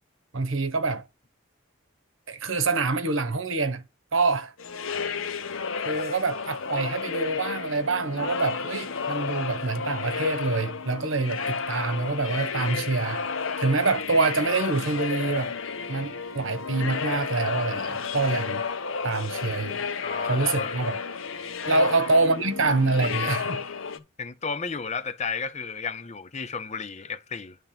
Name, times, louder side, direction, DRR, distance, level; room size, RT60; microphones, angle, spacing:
voice 1, 0.3-1.0 2.3-3.8 4.1-4.5 5.8-13.3 13.6-15.5 15.9-18.6 19.0-19.8 20.2-21.0 21.6-23.6, right 3 dB, 70° right, 1.1 m, -26 dB
sound 1, 4.6-24.0, left 5 dB, 75° left, 0.9 m, -32 dB
voice 2, 20.0-20.8 21.7-21.9 24.2-27.6, left 5 dB, 35° left, 0.6 m, -33 dB
10.5 x 3.5 x 5.7 m
head